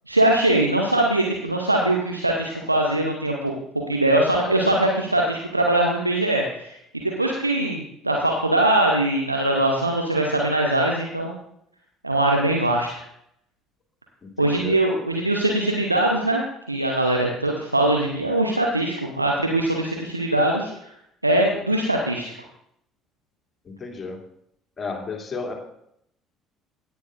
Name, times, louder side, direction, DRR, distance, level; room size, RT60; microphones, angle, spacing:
voice 1, 0.1-3.5 3.9-6.8 7.2-11.3 12.0-13.0 14.4-16.4 16.7-20.7 21.2-22.3, right 1 dB, 90° right, 0 dB, 0.9 m, -21 dB
voice 2, 14.2-14.8 23.6-24.2 24.8-25.5, left 4 dB, 30° left, 1 dB, 2.7 m, -33 dB
16.5 x 9.5 x 2.6 m, 0.74 s
figure-of-eight pair, 55°, 0 cm